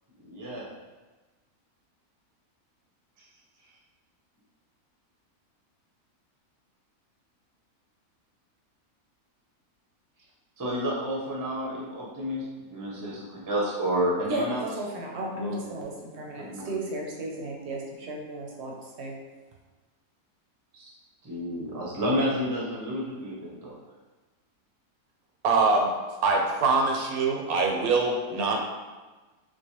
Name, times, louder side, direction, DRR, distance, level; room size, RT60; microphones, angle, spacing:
voice 1, 0.2-0.6 3.2-3.3 10.6-14.6 15.3-15.7 16.3-16.8 20.7-20.9 21.2-23.7, equal, 25° right, -5 dB, 0.4 m, -30 dB
voice 2, 14.3-19.1, right 1 dB, 60° right, -1 dB, 0.7 m, -34 dB
voice 3, 25.4-25.9 26.2-28.6, right 3 dB, 80° right, 2 dB, 1.0 m, -23 dB
4.5 x 2.2 x 2.8 m, 1.2 s
omnidirectional pair, 1.6 m